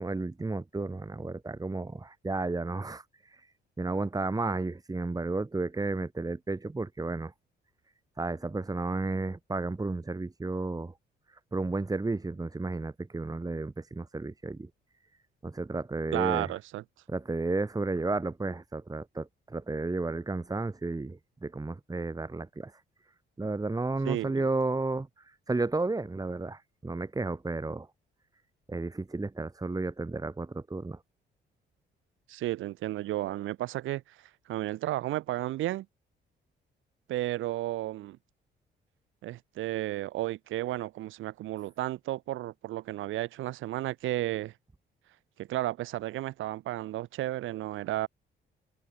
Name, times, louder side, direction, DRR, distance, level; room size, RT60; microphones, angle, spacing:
voice 1, 0.0-3.5 3.8-7.3 8.2-10.9 11.3-14.7 15.4-16.5 17.1-22.8 23.4-27.9 28.7-31.0, right 3 dB, 20° right, 2.6 m, -32 dB
voice 2, 16.1-16.8 24.0-24.4 32.3-34.2 34.5-35.9 37.1-38.2 39.2-44.5 45.4-48.1, right 15 dB, 85° right, 2.4 m, -33 dB
cardioid pair, 90°, 20 cm